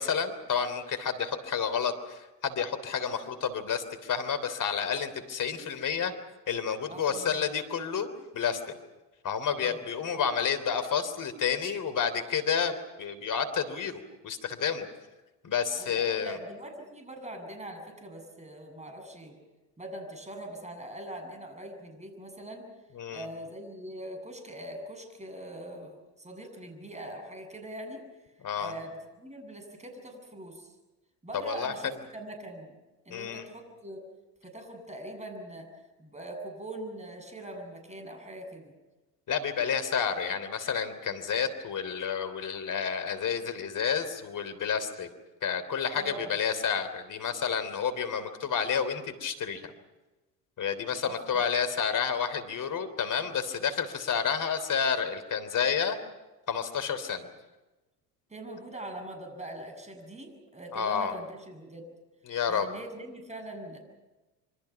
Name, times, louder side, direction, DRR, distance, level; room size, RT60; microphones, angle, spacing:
voice 1, 0.0-6.1 6.5-8.8 9.2-14.9 15.4-16.4 23.0-23.2 28.4-28.7 31.4-31.7 33.1-33.4 39.3-45.1 45.4-49.6 50.6-56.0 56.5-57.2 60.7-61.2 62.3-62.7, left 7 dB, 40° left, 11 dB, 3.4 m, -30 dB
voice 2, 6.9-7.4 9.6-9.9 15.8-19.4 19.8-22.7 23.1-28.0 28.6-30.7 31.2-32.8 33.1-34.0 34.4-35.7 36.0-38.7 45.9-46.4 51.0-51.4 58.3-61.9 62.5-63.8, right 1 dB, 15° right, 5 dB, 7.8 m, -42 dB
27.0 x 25.0 x 5.9 m, 1.1 s
hypercardioid pair, 70°, 47 cm